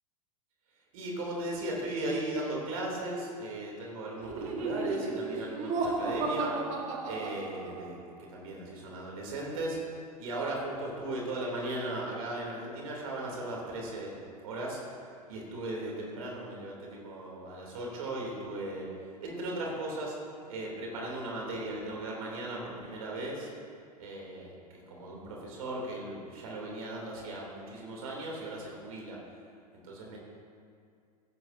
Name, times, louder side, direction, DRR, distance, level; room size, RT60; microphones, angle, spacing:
voice 1, 0.9-6.6 7.0-9.8 10.2-14.1 14.4-14.8 15.3-18.9 19.2-20.1 20.5-23.5 24.0-24.5 24.9-29.2 29.8-30.2, right 1 dB, 55° right, -2 dB, 2.9 m, -37 dB
Laughter, 4.2-8.0, right 3 dB, 35° right, 1.5 m, -34 dB
15.5 x 10.5 x 2.7 m, 2.2 s
figure-of-eight pair, 90°, 21 cm